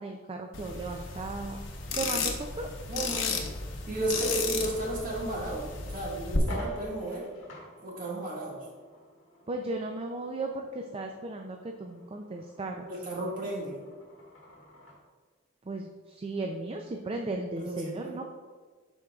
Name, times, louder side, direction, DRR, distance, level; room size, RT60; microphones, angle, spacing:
voice 1, 0.0-1.6 2.0-2.7 9.5-12.9 15.6-18.2, right 2 dB, 30° right, 3 dB, 0.4 m, -36 dB
sound 1, 0.5-6.4, left 4 dB, 85° left, 0.9 m, -34 dB
voice 2, 2.9-3.4 3.9-7.3 7.8-8.7 12.9-13.8 17.5-18.2, right 1 dB, 45° right, -4 dB, 1.7 m, -34 dB
sound 2, 6.4-15.0, left 1 dB, 70° left, 1.6 m, -49 dB
11.5 x 4.5 x 2.3 m, 1.4 s
head